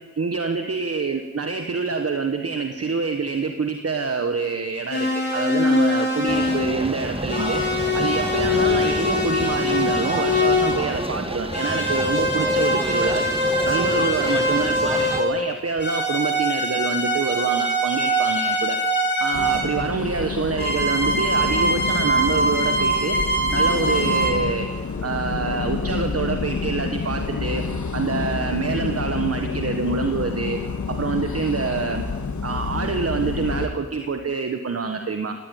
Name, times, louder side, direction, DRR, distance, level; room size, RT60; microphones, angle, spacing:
voice 1, 0.2-7.6 7.9-13.2 13.7-18.8 19.2-23.2 23.5-24.7 25.0-27.6 27.9-30.6 30.9-32.0 32.4-35.3, right 4 dB, 55° right, 6 dB, 1.5 m, -26 dB
sound 1, 4.9-6.8 7.3-10.9 11.5-15.4 15.8-19.7 20.6-24.3, equal, 35° left, 6.0 m, -23 dB
sound 2, 6.3-15.2, right 1 dB, 20° right, 1.7 m, -30 dB
sound 3, 19.3-33.7, left 5 dB, 80° left, 1.8 m, -28 dB
18.5 x 17.5 x 9.3 m, 1.5 s
wide cardioid pair, 90°, 29 cm